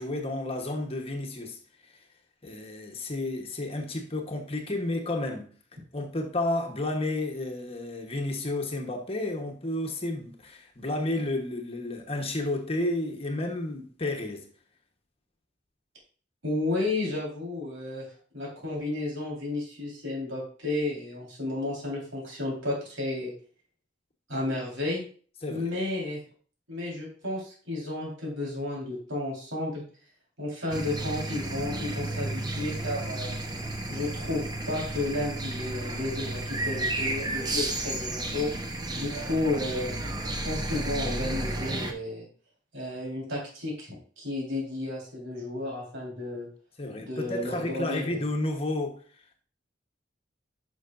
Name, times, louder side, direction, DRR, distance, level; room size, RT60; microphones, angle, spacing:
voice 1, 0.0-1.6 2.4-5.5 5.9-14.5 25.4-25.7 46.8-49.0, left 2 dB, 30° left, 1.1 m, -31 dB
voice 2, 16.4-18.1 18.3-23.3 24.3-25.0 25.5-26.2 26.7-29.8 30.4-33.4 33.9-38.5 38.9-39.9 40.4-42.3 42.7-46.5 47.0-48.1, left 2 dB, 85° right, 4.2 m, -32 dB
sound 1, 30.7-41.9, right 2 dB, 20° right, 0.9 m, -32 dB
10.0 x 6.4 x 2.6 m
head